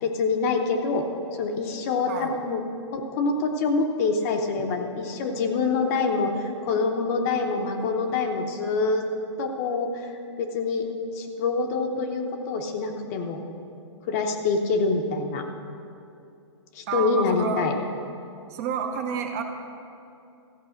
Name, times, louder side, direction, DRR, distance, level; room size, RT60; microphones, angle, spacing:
voice 1, 0.0-1.0 1.3-2.6 2.9-9.1 9.4-10.1 10.4-10.9 11.1-13.4 14.1-15.4 16.7-17.7, left 4 dB, 30° left, 4 dB, 0.8 m, -26 dB
voice 2, 16.9-17.6 18.5-19.4, right 6 dB, 30° right, 5 dB, 0.8 m, -29 dB
14.5 x 5.4 x 6.4 m, 2.7 s
hypercardioid pair, 160°, 15 cm